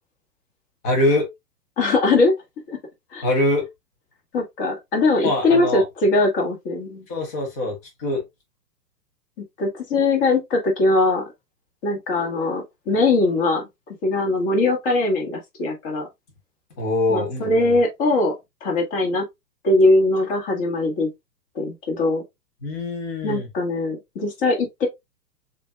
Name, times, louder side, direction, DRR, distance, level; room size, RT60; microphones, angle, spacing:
voice 1, 0.8-1.3 3.2-3.6 5.2-5.8 7.1-8.2 16.8-17.7 22.6-23.5, left 1 dB, 10° left, 0.4 m, -23 dB
voice 2, 1.8-2.3 2.7-2.8 3.1-3.2 4.3-7.0 9.6-11.3 11.8-13.7 14.0-16.1 17.1-18.3 18.6-19.2 19.6-21.1 21.5-22.2 23.2-24.9, left 2 dB, 35° left, 1.4 m, -21 dB
6.6 x 2.4 x 2.2 m
figure-of-eight pair, 115°, 49 cm